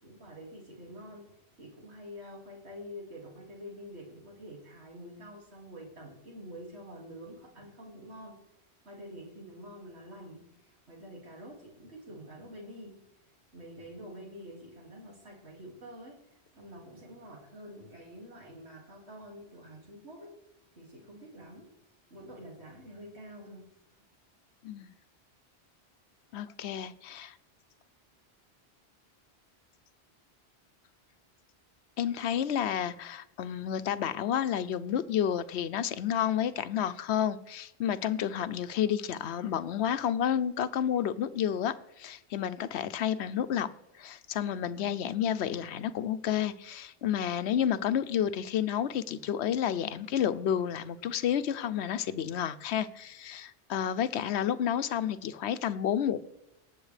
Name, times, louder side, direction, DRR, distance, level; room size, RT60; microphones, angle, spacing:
voice 1, 0.0-8.4 8.8-13.0 13.5-16.2 16.5-20.4 20.8-21.7 22.1-23.7, equal, 80° right, 2.6 m, -47 dB
voice 2, 26.3-27.3 32.0-43.7 44.0-56.2, left 9 dB, 85° left, 0.9 m, -30 dB
19.0 x 7.5 x 3.3 m
omnidirectional pair, 1.1 m